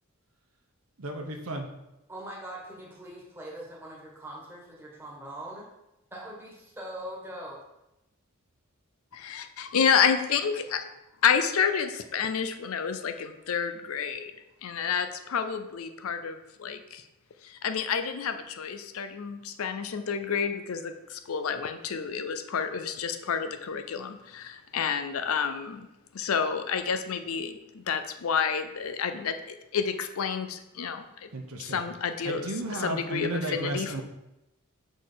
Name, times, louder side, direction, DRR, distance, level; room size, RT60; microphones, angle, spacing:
voice 1, 1.0-1.7 31.3-31.8 32.2-34.0, right 2 dB, 90° right, 3 dB, 0.9 m, -33 dB
voice 2, 2.1-5.7 6.1-7.6, right 1 dB, 10° right, -4 dB, 1.4 m, -42 dB
voice 3, 9.2-10.9 11.2-14.3 14.6-17.0 17.4-25.9 26.1-31.3 31.5-32.5 32.8-34.0, left 6 dB, 80° left, 8 dB, 0.5 m, -29 dB
6.5 x 4.0 x 3.9 m, 0.92 s
head